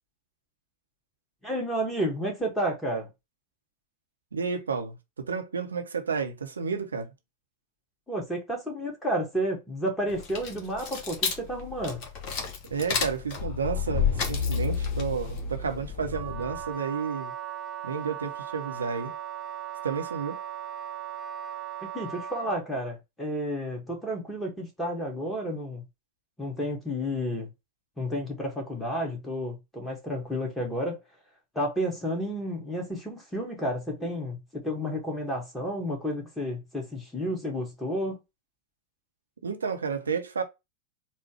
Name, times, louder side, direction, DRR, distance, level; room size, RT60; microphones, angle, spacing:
voice 1, 1.4-3.1 8.1-12.0 21.9-25.8 26.4-27.5 28.0-31.0 31.5-38.2, equal, 5° left, 1.7 m, -31 dB
voice 2, 4.3-7.1 12.7-17.3 17.8-19.1 19.8-20.4 39.4-40.4, right 5 dB, 70° right, 0.7 m, -31 dB
sound 1, 10.1-16.7, left 6 dB, 35° left, 1.2 m, -30 dB
Wind instrument woodwind instrument, 16.1-22.6, right 10 dB, 20° right, 0.7 m, -38 dB
4.2 x 2.2 x 4.3 m
figure-of-eight pair, 90°, 0 cm